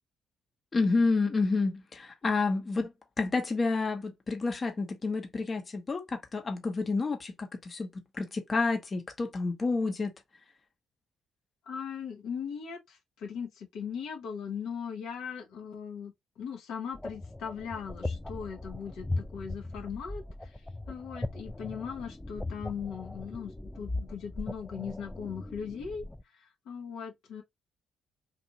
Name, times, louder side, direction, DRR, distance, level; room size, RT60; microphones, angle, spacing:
voice 1, 0.7-10.1, left 3 dB, 40° left, 0.8 m, -29 dB
voice 2, 11.7-20.6 20.9-26.0 26.3-27.4, left 7 dB, 70° left, 0.8 m, -39 dB
sound 1, 16.9-26.2, left 2 dB, 10° left, 0.3 m, -39 dB
2.7 x 2.5 x 2.8 m
hypercardioid pair, 45°, 0 cm